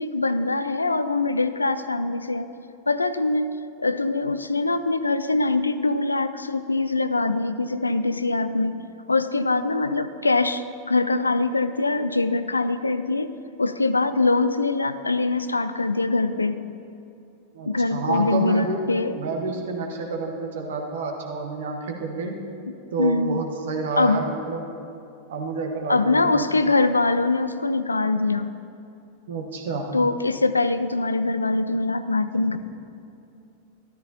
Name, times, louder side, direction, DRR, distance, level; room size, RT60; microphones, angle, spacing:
voice 1, 0.0-2.5 2.9-3.5 3.8-8.8 9.1-13.3 13.6-16.6 17.7-19.1 23.0-23.4 24.0-24.2 25.9-28.5 29.9-32.6, left 3 dB, 85° left, 12 dB, 0.4 m, -23 dB
voice 2, 17.5-18.8 19.1-22.3 22.9-24.6 25.3-26.4 29.3-29.9, right 4 dB, 65° right, 2 dB, 1.3 m, -29 dB
13.0 x 12.0 x 2.8 m, 2.7 s
figure-of-eight pair, 90°, 0 cm